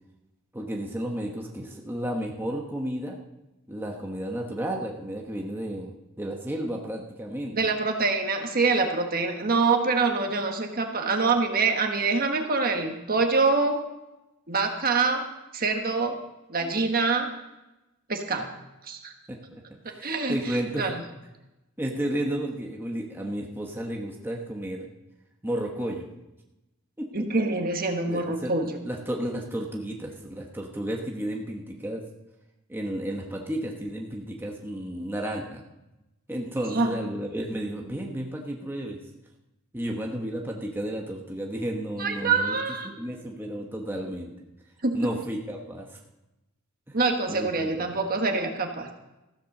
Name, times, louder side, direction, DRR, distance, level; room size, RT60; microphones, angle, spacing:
voice 1, 0.5-3.2 3.7-7.5 16.6-16.7 19.3-21.0 21.8-24.9 25.4-26.1 27.0-27.3 28.1-32.0 32.7-35.6 36.3-39.0 39.7-42.6 42.8-44.3 44.9-46.0 46.9-47.0 47.3-48.0, right 1 dB, 10° right, 0 dB, 1.1 m, -32 dB
voice 2, 7.5-13.8 14.5-15.2 15.5-16.2 16.5-17.3 18.1-18.5 18.8-19.1 20.0-21.0 27.1-28.8 36.7-37.0 42.0-42.9 44.8-45.1 46.9-48.9, right 4 dB, 45° right, 4 dB, 1.4 m, -25 dB
14.5 x 7.7 x 6.6 m, 0.96 s
head